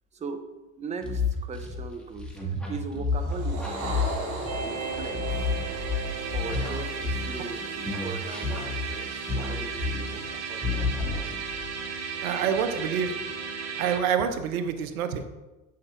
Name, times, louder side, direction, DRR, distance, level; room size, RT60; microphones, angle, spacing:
voice 1, 0.1-0.5 0.8-3.9 4.6-5.6 6.3-10.9 12.2-12.9, right 4 dB, 15° right, 7 dB, 0.6 m, -39 dB
sound 1, 1.0-7.6 7.8-10.3 10.6-11.7, left 4 dB, ahead, 1.5 m, -31 dB
sound 2, 3.2-7.8, right 2 dB, 60° right, 1.7 m, -37 dB
sound 3, 4.5-14.0, right 5 dB, 40° right, 1.0 m, -35 dB
voice 2, 12.2-13.1 13.8-15.2, right 7 dB, 85° right, 9 dB, 0.6 m, -27 dB
7.6 x 5.7 x 2.4 m, 1.1 s
hypercardioid pair, 70°, 42 cm